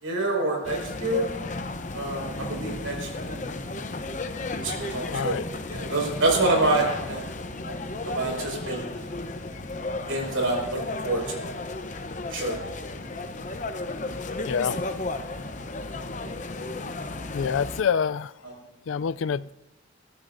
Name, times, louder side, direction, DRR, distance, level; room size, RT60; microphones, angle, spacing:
voice 1, 0.0-1.3 1.9-3.4 4.6-5.4 5.7-7.2 7.6-7.8 8.1-9.1 10.1-10.8 11.0-11.4 12.3-12.6 18.4-18.5, right 2 dB, 85° right, 0 dB, 5.5 m, -27 dB
sound 1, 0.6-17.8, left 2 dB, 40° left, 0.8 m, -34 dB
voice 2, 5.1-5.4 14.4-14.8 17.3-18.3 18.9-19.5, left 6 dB, 75° left, 17 dB, 0.4 m, -26 dB
23.0 x 14.5 x 2.7 m, 1.1 s
head